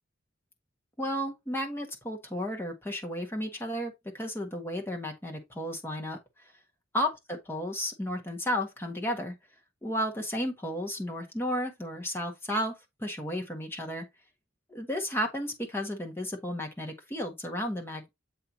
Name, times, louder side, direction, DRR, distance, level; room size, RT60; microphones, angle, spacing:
voice 1, 1.0-6.2 6.9-9.3 9.8-12.7 13.0-14.0 14.7-18.1, equal, 10° left, 1.6 m, -33 dB
7.8 x 3.4 x 4.2 m
head